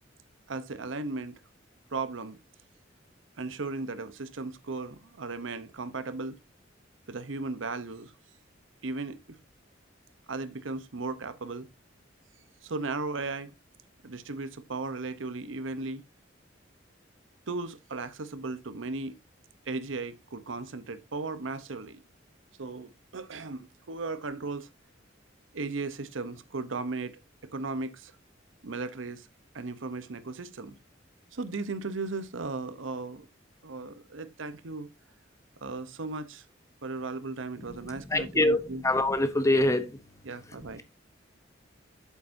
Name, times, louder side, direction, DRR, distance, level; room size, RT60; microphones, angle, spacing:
voice 1, 0.5-1.4 1.9-2.4 3.4-6.4 7.1-8.1 8.8-9.4 10.3-11.7 12.6-13.5 14.0-16.0 17.5-19.2 19.7-22.0 22.6-24.7 25.5-27.2 27.5-28.1 28.6-29.3 29.5-30.8 31.3-33.3 33.6-34.9 35.6-36.4 36.8-38.8 40.2-40.8, right 3 dB, 85° right, 0.8 m, -36 dB
voice 2, 38.1-40.0, left 1 dB, 15° left, 0.8 m, -24 dB
8.6 x 7.1 x 2.7 m
head